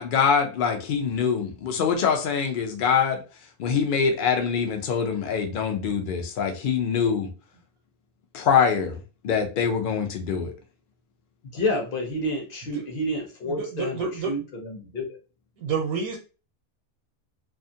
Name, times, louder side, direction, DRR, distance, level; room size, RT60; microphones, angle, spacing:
voice 1, 0.0-3.2 3.6-7.3 8.3-9.0 9.2-10.5, left 6 dB, 75° left, 0.4 m, -24 dB
voice 2, 11.5-15.2, left 1 dB, 50° left, 0.7 m, -29 dB
voice 3, 13.5-14.3 15.6-16.2, right 5 dB, 85° right, 1.1 m, -29 dB
2.5 x 2.4 x 2.6 m
omnidirectional pair, 1.5 m